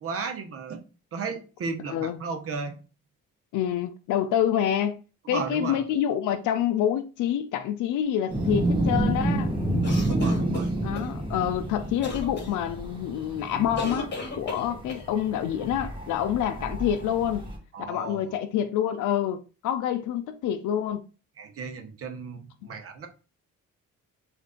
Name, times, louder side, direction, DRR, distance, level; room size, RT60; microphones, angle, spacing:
voice 1, 0.0-0.8 1.1-2.8 5.3-5.8 10.1-10.7 17.7-18.3 21.4-23.1, right 5 dB, 50° right, 0.8 m, -34 dB
voice 2, 3.5-5.0 5.3-9.5 10.8-14.1 14.4-17.5 17.9-21.0, left 10 dB, 80° left, 0.5 m, -27 dB
sound 1, 8.3-17.6, right 1 dB, 15° right, 1.4 m, -29 dB
sound 2, 9.8-11.1 12.0-12.5 13.8-15.1, left 3 dB, 35° left, 1.3 m, -35 dB
3.2 x 2.6 x 3.7 m
cardioid pair, 90°, 30 cm